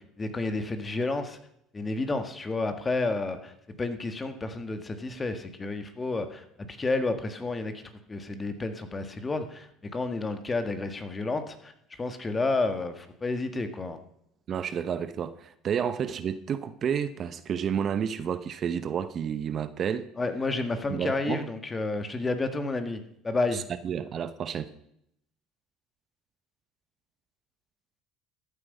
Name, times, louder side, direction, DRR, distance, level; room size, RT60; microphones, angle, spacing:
voice 1, 0.0-1.4 1.7-3.5 3.8-7.7 8.1-11.7 12.0-14.0 20.2-23.6, left 3 dB, 25° left, 1.8 m, -30 dB
voice 2, 14.5-20.1 20.9-21.4 23.5-24.7, right 8 dB, 45° right, 0.9 m, -30 dB
14.0 x 8.5 x 5.5 m
supercardioid pair, 80°, 0 cm